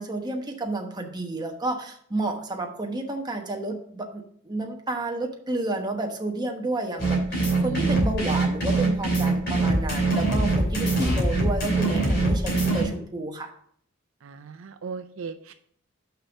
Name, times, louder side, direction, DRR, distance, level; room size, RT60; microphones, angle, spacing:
voice 1, 0.0-13.5, right 2 dB, 20° right, 2 dB, 1.1 m, -31 dB
sound 1, 7.0-12.8, right 2 dB, 55° left, 2.8 m, -23 dB
voice 2, 7.6-8.3 14.2-15.5, right 5 dB, 70° right, 9 dB, 0.5 m, -36 dB
5.7 x 5.5 x 5.7 m, 0.63 s
head